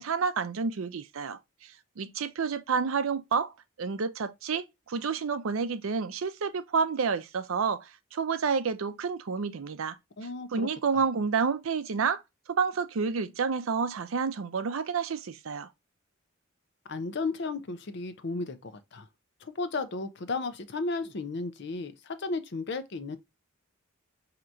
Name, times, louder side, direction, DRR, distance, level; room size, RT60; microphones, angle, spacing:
voice 1, 0.0-10.0 10.5-12.2 12.5-15.7, right 5 dB, 75° right, 0.5 m, -29 dB
voice 2, 10.2-10.7 10.9-11.0 16.9-19.1 19.4-23.2, left 3 dB, 55° left, 0.6 m, -34 dB
4.5 x 2.9 x 2.5 m
head